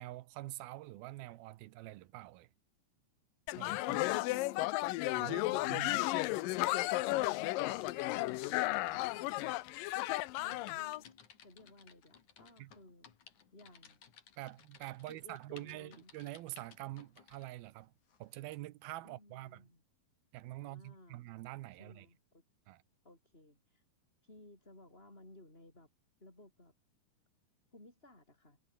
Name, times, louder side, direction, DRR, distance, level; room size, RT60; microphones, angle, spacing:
voice 1, 0.0-2.5 3.6-4.1 5.2-6.0 12.6-12.7 14.4-17.9 18.2-19.7 20.3-22.1 22.7-22.8, right 17 dB, 80° right, 2.7 m, -46 dB
sound 1, 3.5-11.0, left 18 dB, 80° left, 2.1 m, -34 dB
Typing, 6.8-17.5 18.1-18.3, left 8 dB, 50° left, 3.8 m, -60 dB
voice 2, 10.4-11.1 11.4-14.0 15.0-16.1 19.0-19.8 20.6-21.3 21.8-22.4 23.0-23.8 24.2-25.9 26.2-26.7 27.7-28.6, left 1 dB, 15° left, 6.7 m, -59 dB
omnidirectional pair, 4.5 m